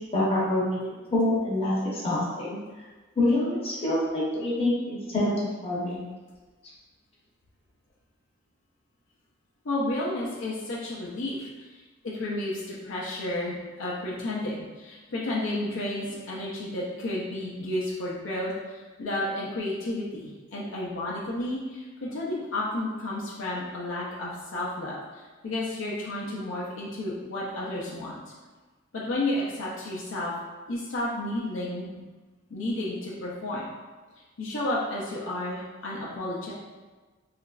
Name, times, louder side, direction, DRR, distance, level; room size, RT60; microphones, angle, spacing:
voice 1, 0.0-2.6 3.2-6.0, left 1 dB, 30° left, -7 dB, 0.8 m, -26 dB
voice 2, 9.6-28.2 28.9-30.3 30.7-32.0 32.5-33.7 34.4-36.5, left 1 dB, 65° left, -6 dB, 0.5 m, -32 dB
3.0 x 2.4 x 2.3 m, 1.3 s
head